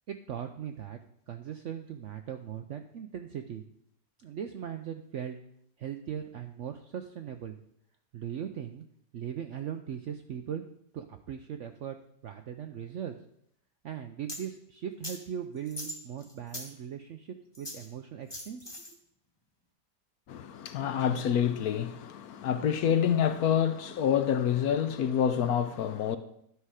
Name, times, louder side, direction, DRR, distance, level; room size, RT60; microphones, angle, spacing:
voice 1, 0.1-1.0 1.3-3.6 4.2-5.4 5.8-7.6 8.1-8.8 9.1-10.6 10.9-12.0 12.2-13.2 13.8-19.0, right 9 dB, 70° right, 0.7 m, -39 dB
sound 1, 14.3-14.4 15.0-15.2 15.7-16.7 17.5-17.9 18.3-18.9, left 1 dB, 15° left, 1.4 m, -40 dB
voice 2, 20.3-26.2, left 8 dB, 70° left, 1.0 m, -27 dB
11.5 x 5.7 x 4.8 m
omnidirectional pair, 1.8 m